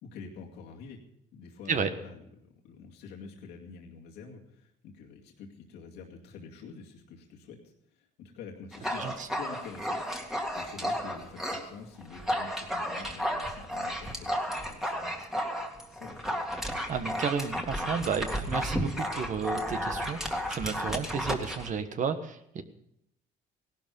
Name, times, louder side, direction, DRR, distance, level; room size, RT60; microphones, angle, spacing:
voice 1, 0.0-1.0 1.3-10.2 10.5-15.2 15.9-16.5, left 5 dB, 85° left, -1 dB, 2.3 m, -47 dB
Dog, 8.7-11.7 12.0-21.7, equal, ahead, 2.1 m, -33 dB
voice 2, 8.9-9.3 16.9-22.6, right 6 dB, 50° right, 9 dB, 1.3 m, -32 dB
17.0 x 12.0 x 5.4 m, 0.76 s
cardioid pair, 110°, 17 cm